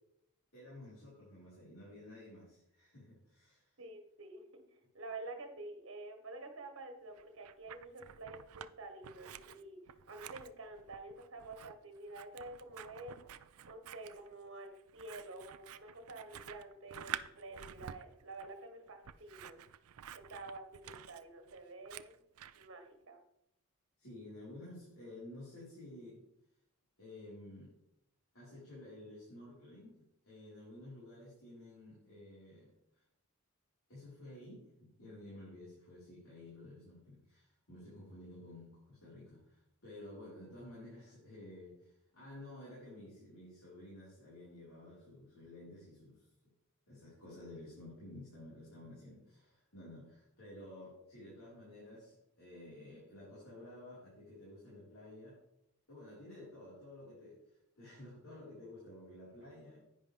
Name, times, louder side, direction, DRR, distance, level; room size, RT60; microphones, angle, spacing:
voice 1, 0.5-3.7 24.0-26.2 27.0-27.7 28.3-30.0 30.2-33.0 33.9-46.3 46.9-55.4 55.9-57.4 57.8-59.8, left 1 dB, 70° left, -9 dB, 4.7 m, -52 dB
voice 2, 3.8-4.6 4.9-9.8 10.1-13.2 13.6-19.6 20.1-22.1 22.5-23.2 59.4-59.6, right 2 dB, 60° right, 5 dB, 1.7 m, -49 dB
Scissors, 7.2-8.7 9.0-22.7, right 9 dB, 75° right, 0.4 m, -50 dB
10.5 x 9.5 x 3.5 m, 0.78 s
head